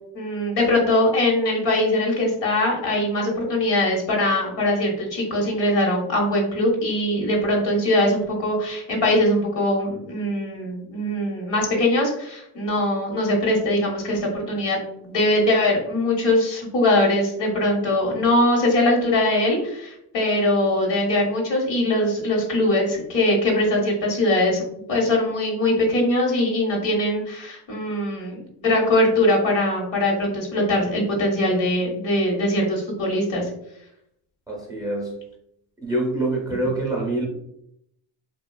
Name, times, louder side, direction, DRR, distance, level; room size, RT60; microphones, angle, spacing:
voice 1, 0.1-14.8 15.0-24.6 24.9-33.5, left 1 dB, 65° left, -1 dB, 1.1 m, -21 dB
voice 2, 34.5-35.1 35.8-37.3, right 2 dB, 10° right, -3 dB, 0.6 m, -25 dB
2.8 x 2.3 x 2.2 m, 0.76 s
cardioid pair, 105°, 46 cm